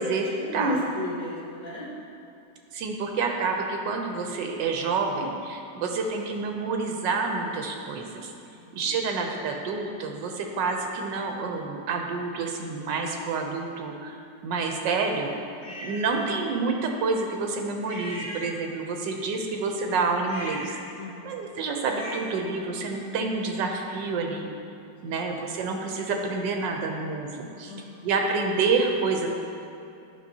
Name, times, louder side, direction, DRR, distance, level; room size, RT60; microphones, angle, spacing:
voice 1, 0.0-1.9 5.7-5.8 8.5-9.1 15.6-16.0 21.0-21.5 25.0-25.3 27.7-28.1, equal, 85° left, -5 dB, 2.0 m, -34 dB
voice 2, 2.7-8.3 8.7-14.1 14.4-15.3 15.8-20.7 21.2-24.5 25.0-27.7 28.0-29.3, right 4 dB, 85° right, 2 dB, 1.3 m, -28 dB
sound 1, 15.6-16.1 17.9-18.9 20.2-22.4, equal, 25° left, 1.3 m, -39 dB
10.5 x 5.7 x 2.7 m, 2.7 s
omnidirectional pair, 1.9 m